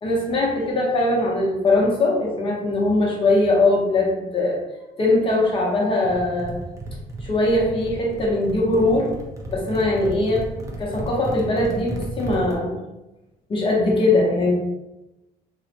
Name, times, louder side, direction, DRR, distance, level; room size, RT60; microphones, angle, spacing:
voice 1, 0.0-4.6 5.0-6.6 7.2-9.1 9.5-10.5 10.8-12.8 13.5-14.5, left 2 dB, 30° left, -2 dB, 0.7 m, -21 dB
sound 1, 6.0-12.6, right 1 dB, 20° right, 0.5 m, -34 dB
2.3 x 2.1 x 2.8 m, 0.97 s
cardioid pair, 110°, 17 cm